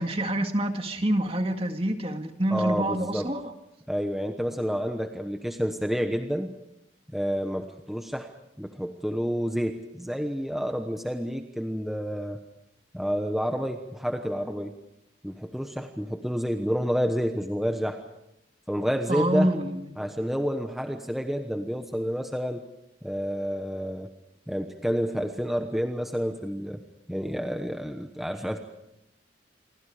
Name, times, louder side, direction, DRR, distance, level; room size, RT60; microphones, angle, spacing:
voice 1, 0.0-3.4 19.1-19.8, right 1 dB, 30° right, 2.1 m, -26 dB
voice 2, 2.5-3.3 3.9-6.5 7.1-8.3 8.6-12.4 12.9-14.7 15.2-18.0 18.7-19.5 20.0-22.7 23.0-24.1 24.5-26.8 27.1-28.6, equal, ahead, 1.0 m, -29 dB
28.5 x 24.0 x 5.0 m
head